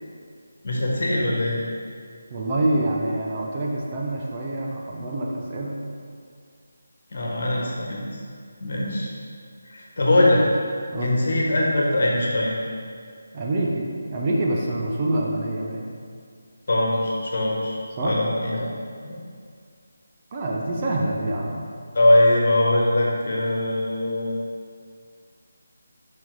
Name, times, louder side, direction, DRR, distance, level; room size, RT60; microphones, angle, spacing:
voice 1, 0.6-1.6 7.1-8.0 8.6-9.1 9.6-10.4 10.9-12.5 16.7-18.7 19.0-19.2 21.9-24.4, left 1 dB, 50° left, -2 dB, 1.4 m, -21 dB
voice 2, 2.3-5.9 10.9-11.2 13.3-15.9 18.0-18.2 20.3-21.7, right 1 dB, 25° right, -2 dB, 0.8 m, -26 dB
7.4 x 5.7 x 3.9 m, 2.2 s
figure-of-eight pair, 155°, 0 cm